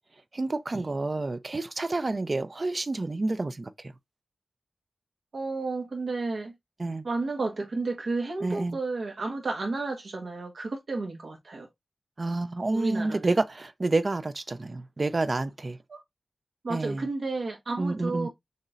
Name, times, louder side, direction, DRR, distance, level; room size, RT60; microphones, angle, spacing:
voice 1, 0.3-3.7 6.8-7.0 8.4-8.8 12.2-15.8 16.7-17.1 17.8-18.3, right 2 dB, 45° right, 0.6 m, -29 dB
voice 2, 5.3-6.5 7.0-11.7 12.7-13.3 15.9-16.0 16.6-18.3, right 3 dB, 80° right, 1.4 m, -32 dB
6.4 x 3.1 x 2.5 m
wide cardioid pair, 65°, 0 cm